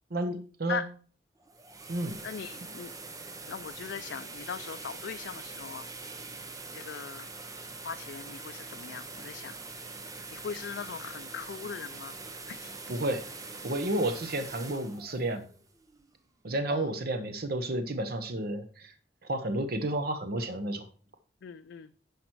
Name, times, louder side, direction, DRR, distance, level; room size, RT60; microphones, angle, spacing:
voice 1, 0.1-0.8 1.9-2.1 12.9-13.2 13.6-15.4 16.4-18.9 19.3-20.8, right 1 dB, 60° right, 9 dB, 0.9 m, -31 dB
sound 1, 1.4-16.3, right 3 dB, 20° right, 0.8 m, -44 dB
voice 2, 2.2-2.9 3.5-5.9 6.7-7.3 7.8-9.5 10.3-12.2 12.5-12.9 16.7-16.9 21.4-21.9, left 6 dB, 70° left, 10 dB, 0.4 m, -39 dB
10.5 x 5.1 x 4.5 m, 0.41 s
head